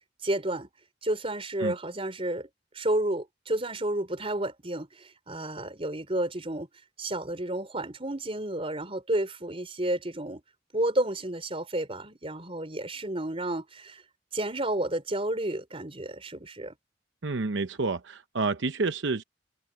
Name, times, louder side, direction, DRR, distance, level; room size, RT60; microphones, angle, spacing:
voice 1, 0.2-0.7 1.0-2.5 2.7-6.7 7.0-10.4 10.7-14.0 14.3-16.8, right 1 dB, 30° right, 4.4 m, -31 dB
voice 2, 17.2-19.2, right 3 dB, 80° right, 0.8 m, -29 dB
head